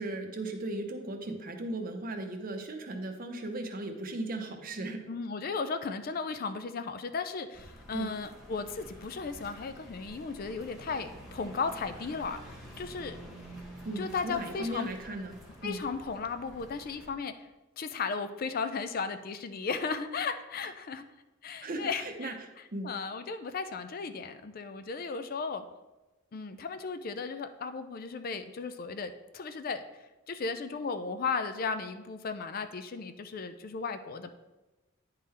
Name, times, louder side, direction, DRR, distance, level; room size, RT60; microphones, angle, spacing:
voice 1, 0.0-5.0 7.9-8.1 13.8-15.8 21.6-22.3 22.7-22.9, right 2 dB, 45° right, 5 dB, 0.7 m, -37 dB
voice 2, 5.1-13.2 14.0-14.9 15.6-17.3 17.8-21.0 21.4-22.4 22.8-25.7 26.3-29.8 30.3-34.3, left 5 dB, 45° left, 10 dB, 0.4 m, -35 dB
sound 1, 7.5-17.1, right 1 dB, ahead, 1.3 m, -49 dB
9.6 x 3.8 x 4.2 m, 1.1 s
head